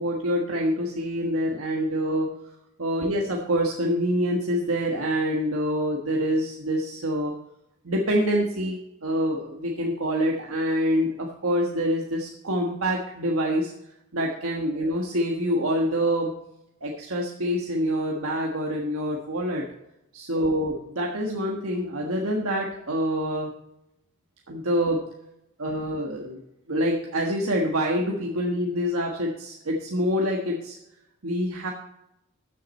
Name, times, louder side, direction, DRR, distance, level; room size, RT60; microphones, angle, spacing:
voice 1, 0.0-2.3 2.8-7.3 7.8-13.7 14.1-16.3 16.8-19.6 20.1-23.5 24.5-25.0 25.6-26.4 26.7-30.8 31.2-31.7, equal, 80° right, -1 dB, 1.5 m, -26 dB
13.5 x 7.6 x 4.3 m, 0.86 s
head